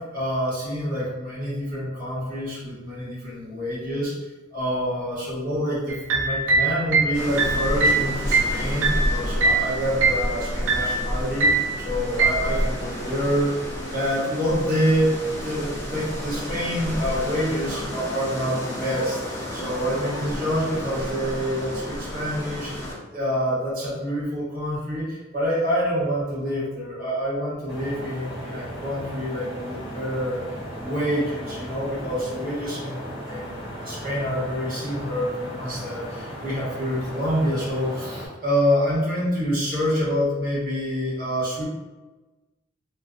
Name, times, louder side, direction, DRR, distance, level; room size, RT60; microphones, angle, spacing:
voice 1, 0.0-4.1 4.5-13.6 13.8-41.6, equal, 50° right, -8 dB, 1.0 m, -27 dB
sound 1, 5.9-9.7 10.0-10.3 10.7-11.0 11.4-11.7 12.2-12.5, right 3 dB, 85° right, 0.4 m, -21 dB
sound 2, 7.1-22.9, equal, 15° left, 0.6 m, -31 dB
sound 3, 27.7-38.3, equal, 25° right, 1.1 m, -36 dB
2.3 x 2.3 x 2.5 m, 1.2 s
head